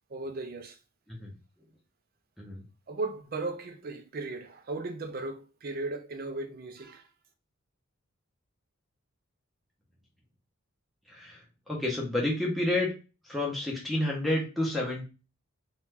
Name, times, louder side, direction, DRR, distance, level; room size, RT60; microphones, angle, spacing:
voice 1, 0.1-0.8 2.9-7.1, right 3 dB, 45° right, 0.4 m, -36 dB
voice 2, 11.1-12.9 13.3-15.0, left 1 dB, ahead, 0.7 m, -30 dB
2.6 x 2.2 x 3.2 m
head